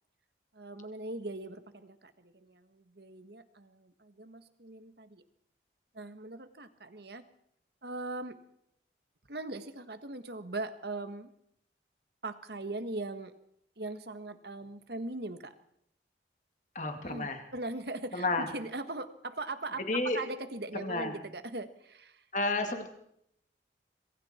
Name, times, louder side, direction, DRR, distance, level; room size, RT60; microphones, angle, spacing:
voice 1, 0.5-5.2 5.9-7.2 7.8-8.4 9.3-11.3 12.2-13.3 13.8-15.5 17.0-22.2 22.7-22.8, right 2 dB, 65° right, 9 dB, 1.6 m, -40 dB
voice 2, 16.7-17.4 18.1-18.5 19.9-20.2 20.7-21.1 22.3-22.9, left 2 dB, 40° left, 5 dB, 2.4 m, -31 dB
26.0 x 22.0 x 4.5 m, 0.74 s
head